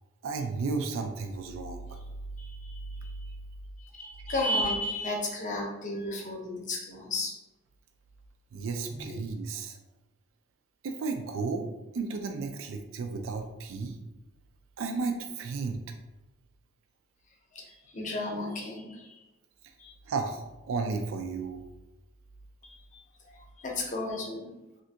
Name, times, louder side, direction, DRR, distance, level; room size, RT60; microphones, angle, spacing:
voice 1, 0.2-2.0 8.5-9.8 10.8-11.7 11.9-14.0 14.8-15.8 20.1-21.6, right 4 dB, 75° right, 5 dB, 0.3 m, -33 dB
voice 2, 2.4-2.7 3.8-7.3 17.5-19.0 19.8-19.9 22.6-22.7 23.6-24.5, left 1 dB, 35° left, 0 dB, 0.6 m, -33 dB
3.2 x 2.5 x 2.7 m, 1.0 s
head